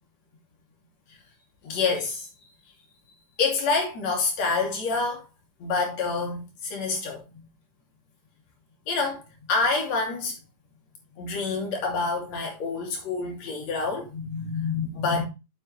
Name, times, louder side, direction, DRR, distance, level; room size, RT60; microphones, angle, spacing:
voice 1, 1.6-2.3 3.4-5.3 5.6-7.5 8.9-9.2 9.5-10.3 11.2-15.2, left 4 dB, 55° left, 3.7 m, -27 dB
8.0 x 7.7 x 3.4 m
omnidirectional pair, 4.0 m